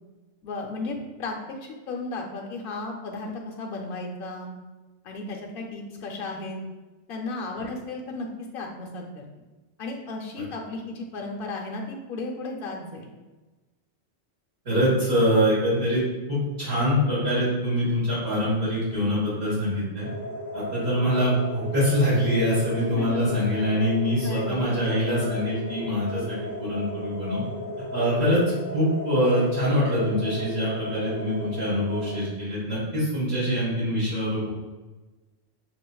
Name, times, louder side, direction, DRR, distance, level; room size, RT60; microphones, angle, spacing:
voice 1, 0.4-1.4 1.9-4.5 5.0-6.6 7.1-8.3 8.5-9.2 9.8-13.1 22.9-23.2 24.2-24.6, left 3 dB, 55° left, 0 dB, 0.8 m, -34 dB
voice 2, 14.6-16.0 16.3-20.1 20.5-27.4 27.9-28.4 28.7-34.5, equal, 60° right, -10 dB, 1.7 m, -24 dB
sound 1, 20.0-32.2, equal, 20° right, 0.6 m, -35 dB
5.7 x 2.5 x 2.3 m, 1.2 s
omnidirectional pair, 1.2 m